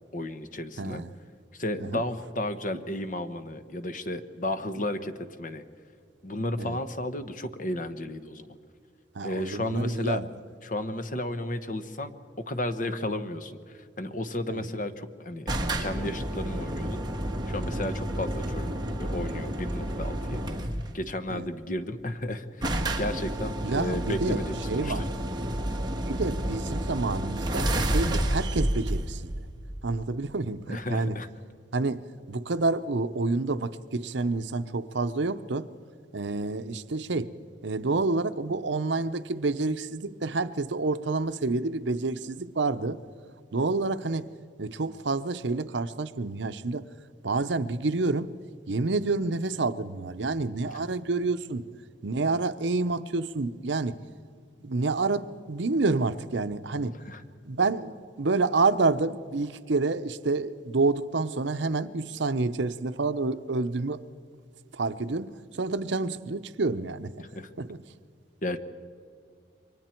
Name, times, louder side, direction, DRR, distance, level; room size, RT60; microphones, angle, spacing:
voice 1, 0.1-1.0 1.5-5.1 5.4-5.6 6.2-8.6 9.2-10.2 10.6-12.1 12.5-15.5 15.8-17.0 17.5-18.7 19.0-20.4 20.9-25.0 30.7-31.3 57.0-57.2 67.2-67.5 68.4-68.6, left 1 dB, 45° left, 10 dB, 1.1 m, -33 dB
voice 2, 0.8-1.1 1.8-2.0 6.6-6.8 9.1-10.3 14.5-14.7 21.3-21.5 23.6-25.1 26.1-29.3 29.8-31.2 31.7-35.7 36.1-37.3 37.6-43.0 43.5-44.3 44.6-46.9 47.2-48.3 48.7-51.7 52.0-54.0 54.6-57.0 57.4-64.0 64.7-67.2 67.6-67.8, right 3 dB, 75° right, 12 dB, 0.7 m, -28 dB
sound 1, 15.5-21.0 22.0-22.1 22.3-22.4 22.6-30.1, right 1 dB, 25° right, 1.6 m, -30 dB
28.5 x 23.5 x 4.5 m, 2.2 s
head